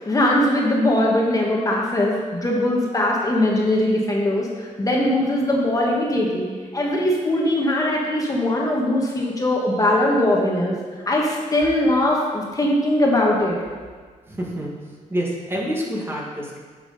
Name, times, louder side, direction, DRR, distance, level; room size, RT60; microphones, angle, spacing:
voice 1, 0.0-6.5 6.7-10.7 11.1-13.5, left 1 dB, 25° left, -2 dB, 1.3 m, -20 dB
voice 2, 14.3-14.7 15.1-16.6, equal, 15° right, -3 dB, 1.5 m, -27 dB
8.8 x 5.9 x 4.0 m, 1.5 s
cardioid pair, 110°, 14 cm